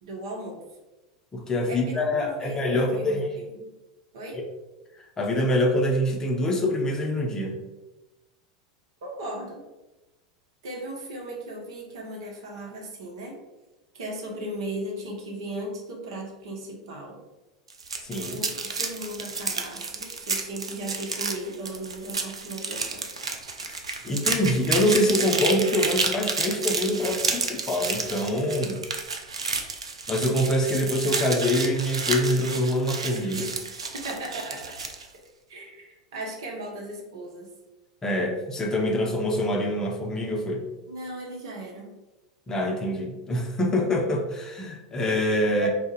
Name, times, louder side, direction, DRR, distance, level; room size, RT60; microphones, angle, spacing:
voice 1, 0.0-0.6 1.7-3.7 4.1-4.4 9.0-9.6 10.6-13.4 13.9-17.2 18.3-23.1 34.0-34.8 35.5-37.5 40.9-42.0 45.6-45.7, right 1 dB, 65° right, 0 dB, 0.7 m, -37 dB
voice 2, 1.3-3.3 5.0-7.6 18.0-18.4 23.6-28.8 30.1-33.5 38.0-40.7 42.5-45.7, left 1 dB, 20° left, 1 dB, 0.6 m, -25 dB
sound 1, 17.7-35.1, right 4 dB, 85° right, 0.3 m, -30 dB
2.4 x 2.0 x 3.9 m, 1.0 s
figure-of-eight pair, 85°, 3 cm